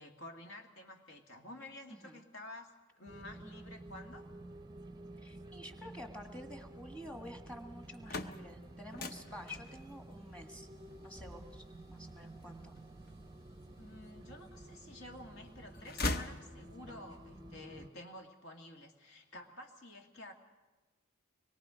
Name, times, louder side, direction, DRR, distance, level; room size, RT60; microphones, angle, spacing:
voice 1, 0.0-4.3 13.8-20.3, left 1 dB, 65° left, 2 dB, 2.2 m, -51 dB
sound 1, 3.1-17.9, right 1 dB, 20° right, 0.6 m, -51 dB
voice 2, 5.2-10.7 11.0-12.7, left 1 dB, 5° left, 4 dB, 1.5 m, -50 dB
sound 2, 7.8-13.7 14.3-15.1 15.4-17.0, left 2 dB, 45° left, 0.9 m, -42 dB
24.5 x 21.5 x 5.1 m, 1.2 s
head